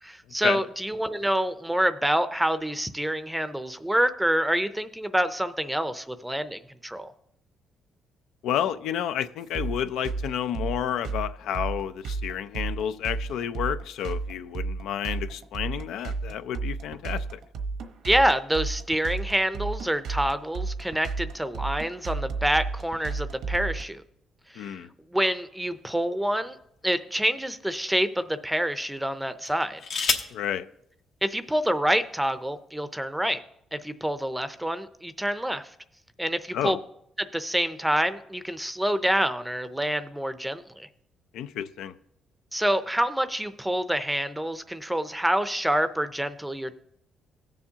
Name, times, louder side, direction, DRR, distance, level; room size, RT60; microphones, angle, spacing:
voice 1, 0.0-7.1 18.0-24.0 24.5-24.7 25.1-26.6 26.8-29.8 31.2-33.4 33.7-35.7 36.2-36.8 37.2-40.9 42.5-46.7, right 1 dB, 5° right, 11 dB, 0.5 m, -27 dB
voice 2, 8.4-17.4 24.6-24.9 30.3-30.7 36.5-36.8 41.3-41.9, left 9 dB, 85° left, 12 dB, 0.4 m, -30 dB
sound 1, 9.5-23.8, right 4 dB, 85° right, 1.1 m, -32 dB
sound 2, 25.6-26.9 27.6-27.8 29.4-30.4 31.6-31.7 32.0-32.4, left 5 dB, 65° left, 1.0 m, -31 dB
17.0 x 7.0 x 2.8 m, 0.74 s
cardioid pair, 90°, 0 cm